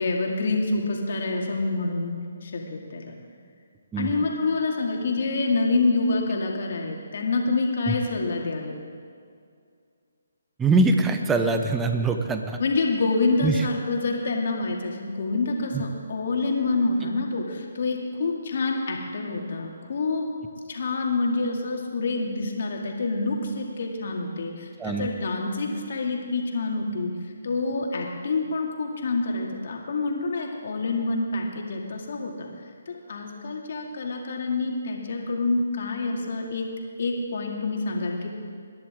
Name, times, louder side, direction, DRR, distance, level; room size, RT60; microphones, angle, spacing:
voice 1, 0.0-3.1 4.0-8.7 12.6-20.3 20.7-27.1 27.4-32.5 32.9-36.7 37.0-38.4, left 3 dB, 55° left, 0 dB, 2.4 m, -27 dB
voice 2, 10.6-12.6 13.4-13.6 15.7-15.8 24.8-25.1, right 3 dB, 10° right, 5 dB, 0.9 m, -23 dB
21.5 x 10.5 x 3.7 m, 2.3 s
figure-of-eight pair, 145°, 0 cm